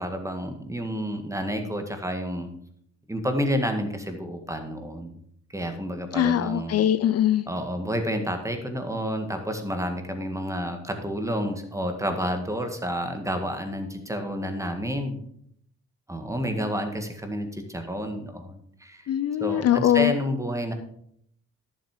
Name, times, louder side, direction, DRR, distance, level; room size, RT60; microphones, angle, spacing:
voice 1, 0.0-2.5 3.1-5.1 5.5-6.8 7.5-15.2 16.1-19.1 19.4-20.7, equal, 10° right, 5 dB, 1.9 m, -30 dB
voice 2, 6.1-7.4 19.1-20.1, left 11 dB, 55° left, 13 dB, 0.5 m, -22 dB
11.0 x 7.3 x 5.0 m, 0.69 s
cardioid pair, 90°, 30 cm